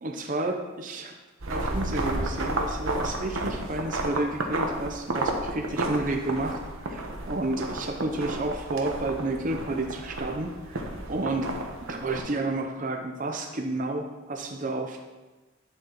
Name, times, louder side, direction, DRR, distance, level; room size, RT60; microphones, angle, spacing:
voice 1, 0.0-1.1 1.5-10.8 11.1-11.5 11.9-15.0, right 2 dB, 40° right, 3 dB, 0.7 m, -31 dB
sound 1, 1.4-12.2, right 2 dB, 85° right, 1.2 m, -32 dB
10.5 x 7.6 x 3.1 m, 1.2 s
head